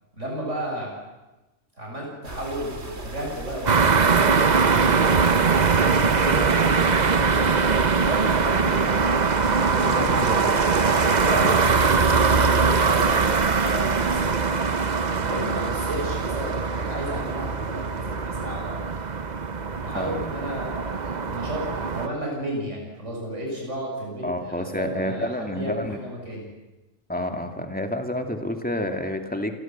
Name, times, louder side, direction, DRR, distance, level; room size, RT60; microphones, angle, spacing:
voice 1, 0.1-1.0 1.8-7.5 7.9-10.5 11.2-11.8 12.3-14.4 15.2-18.8 19.8-26.5, equal, 90° right, -1 dB, 7.1 m, -33 dB
sound 1, 2.2-14.3, right 2 dB, 65° right, 3.2 m, -36 dB
sound 2, 3.7-22.1, right 5 dB, 40° right, 1.0 m, -22 dB
voice 2, 11.3-12.0 19.9-20.3 24.2-26.0 27.1-29.6, left 1 dB, 5° left, 5 dB, 2.3 m, -29 dB
28.5 x 23.0 x 7.4 m, 1.1 s
omnidirectional pair, 1.2 m